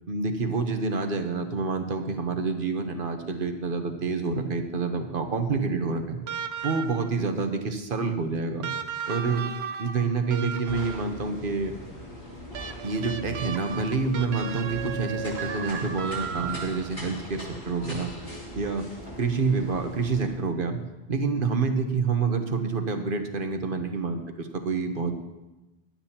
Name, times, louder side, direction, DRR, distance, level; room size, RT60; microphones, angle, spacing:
voice 1, 0.1-6.2 6.6-8.7 9.1-9.4 9.8-11.7 12.8-18.1 18.5-18.8 19.2-20.8 21.1-25.1, right 4 dB, 60° right, 6 dB, 1.2 m, -28 dB
sound 1, 6.3-7.2 8.6-11.2 12.5-17.0 18.3-18.4, right 7 dB, 85° right, 1.0 m, -35 dB
sound 2, 10.6-20.3, equal, 60° left, 3.6 m, -40 dB
16.0 x 11.5 x 2.9 m, 1.0 s
omnidirectional pair, 1.1 m